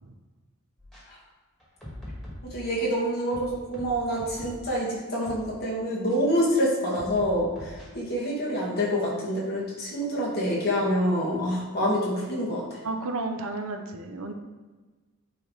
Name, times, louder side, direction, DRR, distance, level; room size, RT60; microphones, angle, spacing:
sound 1, 0.8-1.0 1.6-2.9 3.3-4.7 5.2-5.5 6.1-6.2 6.9-7.9, left 1 dB, ahead, 2.0 m, -42 dB
voice 1, 2.4-12.6, equal, 45° left, -5 dB, 2.0 m, -27 dB
voice 2, 12.8-14.3, right 3 dB, 70° right, 5 dB, 0.7 m, -32 dB
9.7 x 3.4 x 4.0 m, 1.3 s
head